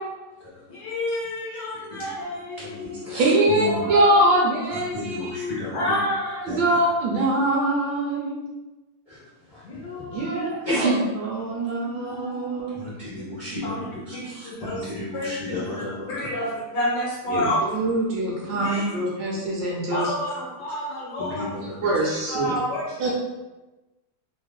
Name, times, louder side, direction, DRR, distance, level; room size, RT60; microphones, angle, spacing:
voice 1, 0.7-3.2 3.6-4.3 5.7-6.9 9.6-10.6 11.4-12.5 13.6-13.8 14.1-14.9 15.1-15.3 15.6-15.8 16.1-17.8 18.6-19.0 19.9-21.6 22.3-23.0, left 1 dB, 65° left, -6 dB, 1.2 m, -29 dB
voice 2, 2.6-3.9 4.7-5.9 6.5-6.8 9.1-9.2 9.5-9.6 10.6-10.9 12.7-16.1 17.3-17.4 21.2-21.9 22.5-22.6 23.0-23.1, equal, 40° left, -11 dB, 0.5 m, -32 dB
voice 3, 3.2-5.6 6.4-8.5 10.1-10.5 10.8-12.8 13.2-13.3 14.3-14.4 17.3-17.5 17.7-20.1 21.8-22.5 23.0-23.1, right 1 dB, 75° right, -3 dB, 1.2 m, -23 dB
3.3 x 2.4 x 2.2 m, 1.1 s
omnidirectional pair, 2.3 m